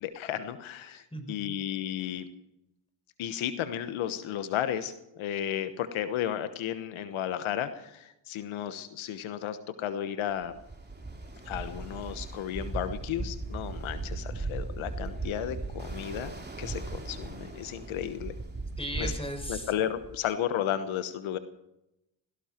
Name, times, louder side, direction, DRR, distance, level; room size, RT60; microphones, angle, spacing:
voice 1, 0.0-2.2 3.2-10.6 11.5-16.3 16.6-18.3 19.0-19.1 19.5-21.4, left 10 dB, 90° left, 11 dB, 1.2 m, -33 dB
voice 2, 1.1-1.5 18.8-19.7, equal, 10° left, 5 dB, 5.8 m, -36 dB
Ocean, 10.4-20.3, right 3 dB, 20° right, 3.2 m, -38 dB
17.5 x 17.5 x 4.5 m, 0.86 s
cardioid pair, 70°, 47 cm